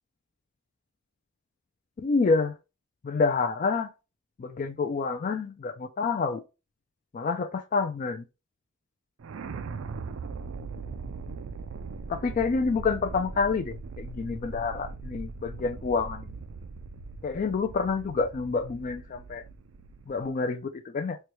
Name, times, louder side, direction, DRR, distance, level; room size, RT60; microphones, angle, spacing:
voice 1, 2.0-2.6 3.0-3.9 4.4-6.4 7.1-8.2 12.1-16.3 17.2-19.4 20.1-21.2, left 4 dB, 40° left, 0.3 m, -28 dB
sound 1, 9.2-20.3, right 4 dB, 85° right, 0.4 m, -40 dB
4.4 x 2.2 x 2.9 m
head